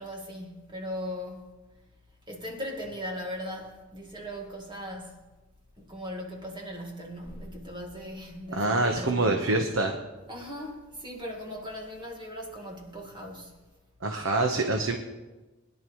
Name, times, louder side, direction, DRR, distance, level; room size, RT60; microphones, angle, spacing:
voice 1, 0.0-1.5 2.3-5.2 5.8-9.5 10.3-13.6, equal, 20° right, 1.8 m, -38 dB
voice 2, 8.5-10.0 14.0-15.0, right 2 dB, 65° right, 1.0 m, -25 dB
22.0 x 11.0 x 3.1 m
head